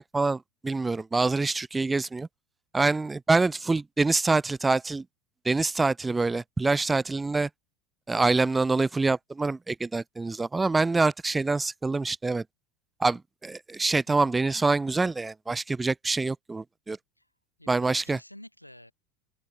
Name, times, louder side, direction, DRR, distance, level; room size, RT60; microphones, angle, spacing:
voice 1, 0.0-2.3 2.7-5.0 5.4-7.5 8.1-12.4 13.0-17.0 17.7-18.2, right 3 dB, 15° right, 0.4 m, -25 dB
voice 2, 17.6-18.9, left 1 dB, 90° left, 5.9 m, -50 dB
figure-of-eight pair, 75°, 0 cm